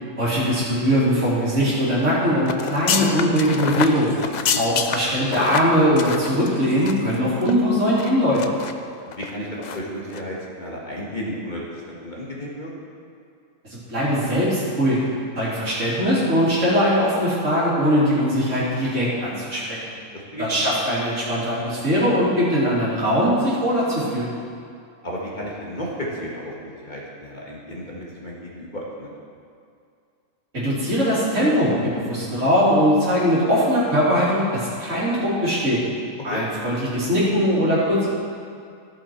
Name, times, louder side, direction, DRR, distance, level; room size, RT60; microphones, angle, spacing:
voice 1, 0.2-4.1 4.6-8.5 13.7-15.0 15.4-19.8 20.4-24.3 30.5-35.8 36.2-38.1, equal, 60° right, -8 dB, 3.4 m, -21 dB
sound 1, 2.4-7.1 7.4-7.5 8.0-8.7 9.1-9.3 9.6-9.8 10.1-10.2, left 7 dB, 75° left, 0.4 m, -27 dB
voice 2, 9.0-12.7 20.1-20.5 25.0-29.1 36.3-36.4, equal, 35° left, -5 dB, 1.7 m, -33 dB
14.0 x 7.5 x 4.5 m, 2.4 s
omnidirectional pair, 1.4 m